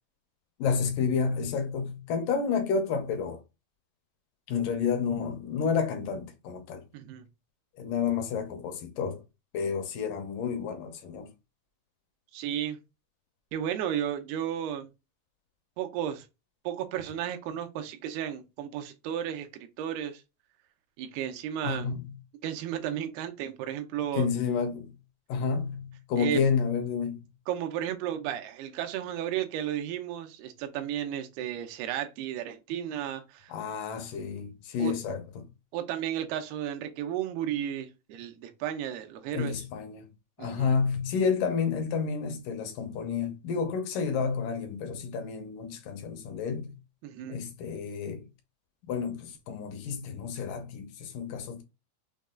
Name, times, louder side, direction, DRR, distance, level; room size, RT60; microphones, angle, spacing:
voice 1, 0.6-3.4 4.5-6.8 7.8-9.2 9.5-11.3 21.6-22.2 24.1-25.0 25.3-27.3 33.5-35.5 39.3-40.1 40.4-46.8 47.3-48.3 48.9-51.6, left 6 dB, 75° left, 2.1 m, -30 dB
voice 2, 6.9-7.3 12.3-12.8 13.5-14.9 15.8-16.3 16.7-20.2 21.0-21.9 22.4-24.3 26.2-26.4 27.5-33.5 34.8-34.9 35.7-39.6 40.4-40.7 47.0-47.4, right 10 dB, 80° right, 2.7 m, -33 dB
6.4 x 2.3 x 3.6 m
omnidirectional pair, 4.5 m